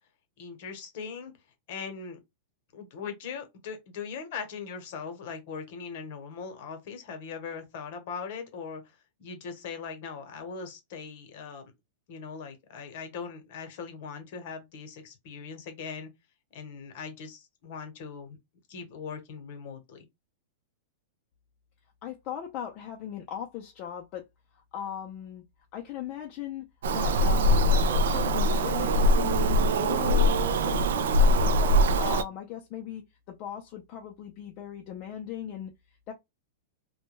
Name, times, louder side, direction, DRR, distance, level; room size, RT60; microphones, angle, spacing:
voice 1, 0.4-1.3 1.7-2.2 2.7-11.7 12.1-16.1 16.5-18.4 18.7-20.0, left 5 dB, 55° left, 0.9 m, -40 dB
voice 2, 22.0-24.2 24.5-25.4 25.7-26.6 26.9-29.4 29.8-31.2 31.5-36.1, left 10 dB, 40° left, 0.5 m, -38 dB
Bird vocalization bird call bird song, 26.8-32.2, equal, 80° right, 0.3 m, -22 dB
2.2 x 2.2 x 3.0 m
hypercardioid pair, 140°, 0 cm